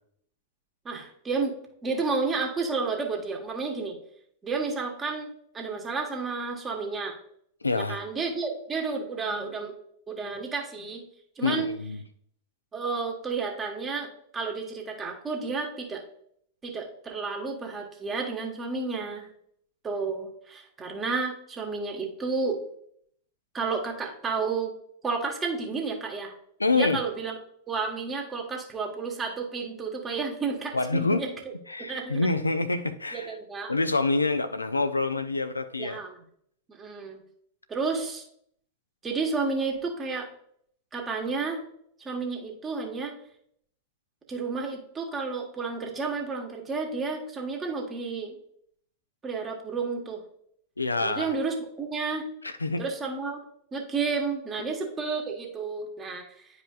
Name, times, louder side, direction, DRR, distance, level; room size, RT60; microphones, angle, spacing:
voice 1, 0.8-1.6 1.8-4.0 4.4-7.2 7.8-9.7 10.1-11.0 11.4-11.7 12.7-16.0 16.6-19.3 19.8-22.6 23.5-24.7 25.0-26.3 26.7-27.3 27.7-31.3 31.8-32.3 33.1-33.7 35.8-36.2 36.7-37.2 37.7-38.2 39.0-40.3 40.9-41.6 42.0-43.1 44.3-48.3 49.2-50.2 51.0-52.3 52.8-53.4 53.7-56.5, right 4 dB, 20° right, 1.3 m, -31 dB
voice 2, 7.6-8.0 11.4-12.0 26.6-27.0 30.7-31.2 31.7-33.4 33.7-36.0 50.8-51.3 52.4-52.8, left 3 dB, 85° left, 0.4 m, -26 dB
9.8 x 4.8 x 2.4 m
figure-of-eight pair, 95°, 0 cm